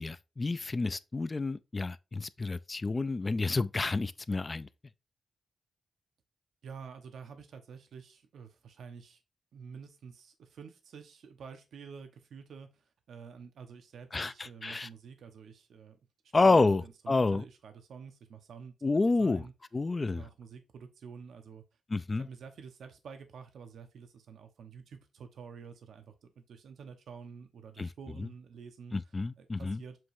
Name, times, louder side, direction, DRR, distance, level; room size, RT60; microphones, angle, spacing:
voice 1, 0.0-4.7 14.1-14.9 16.3-17.4 18.8-19.5 19.7-20.2 21.9-22.3 27.8-27.9 28.2-28.3 28.9-29.8, left 3 dB, 30° left, 0.4 m, -29 dB
voice 2, 6.6-9.2 9.5-12.8 13.1-16.0 16.4-18.7 19.2-19.5 20.1-21.6 22.2-29.0 29.4-30.0, right 6 dB, 85° right, 1.0 m, -49 dB
7.6 x 3.0 x 4.8 m
cardioid pair, 100°, 0 cm